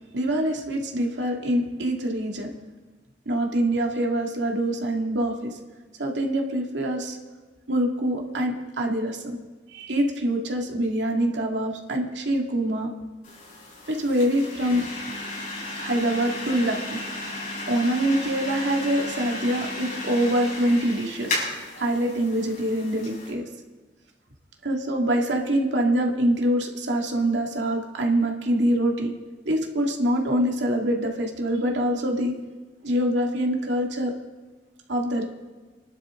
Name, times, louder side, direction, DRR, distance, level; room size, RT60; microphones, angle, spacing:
voice 1, 0.1-2.5 3.3-5.6 6.0-7.2 7.7-9.4 9.7-12.9 13.9-14.9 15.8-17.0 17.7-21.4 21.8-23.4 24.6-29.1 29.5-32.4 32.8-34.1 34.9-35.3, right 1 dB, 90° right, 1 dB, 2.2 m, -25 dB
sound 1, 13.2-23.3, left 2 dB, 50° left, 7.0 m, -34 dB
27.5 x 12.0 x 3.8 m, 1.3 s
head